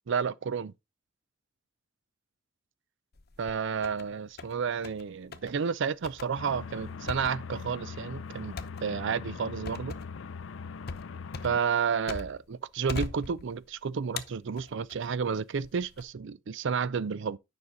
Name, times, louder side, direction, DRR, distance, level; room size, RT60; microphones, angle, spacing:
voice 1, 0.1-0.7 3.4-9.9 11.4-17.4, right 6 dB, 65° right, 0.5 m, -31 dB
sound 1, 3.1-4.0 4.4-5.0 5.3-5.5 6.0-12.5 12.9-13.7 14.2-15.1 15.6-16.0, left 4 dB, 50° left, 0.8 m, -41 dB
sound 2, 6.4-11.6, left 5 dB, 70° left, 0.5 m, -41 dB
9.7 x 5.5 x 3.7 m
head